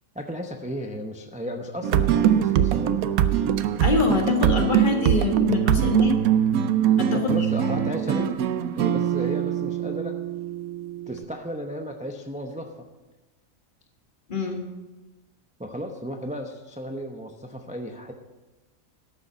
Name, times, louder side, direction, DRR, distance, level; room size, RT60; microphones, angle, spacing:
voice 1, 0.1-3.0 7.1-8.3 8.7-10.1 11.1-12.8 15.6-18.1, equal, 5° right, 3 dB, 0.6 m, -34 dB
sound 1, 1.8-11.2, right 10 dB, 90° right, 1.1 m, -23 dB
voice 2, 3.8-6.2 7.0-7.3 7.6-7.7 14.3-14.6, left 3 dB, 35° left, 2 dB, 1.6 m, -24 dB
12.0 x 7.2 x 6.6 m, 1.1 s
omnidirectional pair, 1.5 m